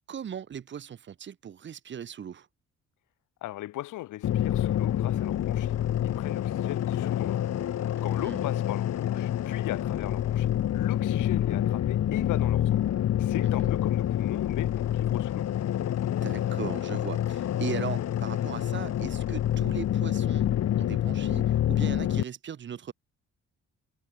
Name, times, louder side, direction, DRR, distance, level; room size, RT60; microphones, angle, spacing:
voice 1, 0.1-2.5 8.0-8.4 13.6-13.7 16.2-20.5 20.8-22.9, right 8 dB, 40° right, 0.7 m, -38 dB
voice 2, 3.4-5.8 6.2-7.4 8.0-12.8 13.2-15.5, left 16 dB, 85° left, 1.2 m, -38 dB
sound 1, 4.2-22.2, left 11 dB, 55° left, 1.0 m, -27 dB
cardioid pair, 90°, 30 cm